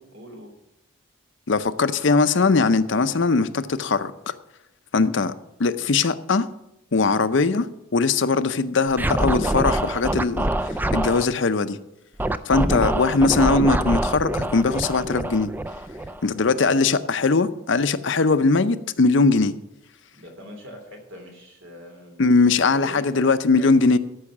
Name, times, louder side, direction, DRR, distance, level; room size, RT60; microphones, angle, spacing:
voice 1, 0.1-0.5 4.9-5.1 12.5-12.7 20.1-22.3 22.7-23.7, equal, 75° right, 3 dB, 3.0 m, -42 dB
voice 2, 1.5-4.3 4.9-5.3 5.6-6.5 6.9-7.7 7.9-10.5 10.9-11.8 12.5-15.5 16.2-19.5 22.2-24.0, left 4 dB, 60° left, 12 dB, 0.6 m, -20 dB
Scratching (performance technique), 8.9-11.3 12.2-16.5, right 1 dB, 10° right, 0.4 m, -25 dB
13.5 x 5.7 x 7.3 m, 0.86 s
head